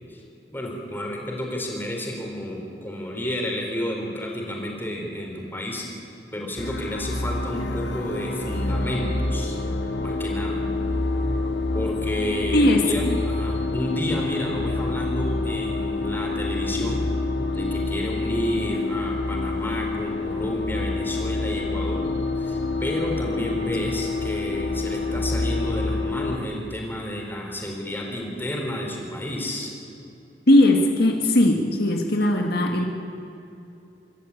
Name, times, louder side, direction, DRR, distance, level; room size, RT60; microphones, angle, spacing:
voice 1, 0.5-5.9 6.3-9.6 10.0-10.7 11.7-17.1 17.5-22.1 22.4-29.7, left 1 dB, 10° left, 0 dB, 4.3 m, -31 dB
sound 1, 6.6-26.4, left 2 dB, 80° left, 1.7 m, -27 dB
voice 2, 12.5-13.2 30.5-32.8, left 1 dB, 60° left, 3 dB, 1.7 m, -19 dB
25.5 x 13.5 x 8.6 m, 2.8 s
head